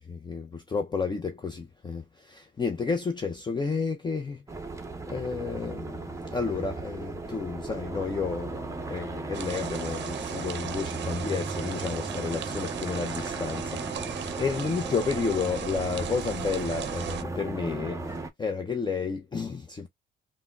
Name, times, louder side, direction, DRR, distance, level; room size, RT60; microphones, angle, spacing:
voice 1, 0.0-4.4 5.1-18.1 18.4-19.9, left 5 dB, 20° left, 0.5 m, -31 dB
sound 1, 4.5-18.3, right 2 dB, 15° right, 0.6 m, -36 dB
sound 2, 9.3-17.2, right 10 dB, 60° right, 0.5 m, -37 dB
3.5 x 2.1 x 2.2 m
cardioid pair, 90°, 20 cm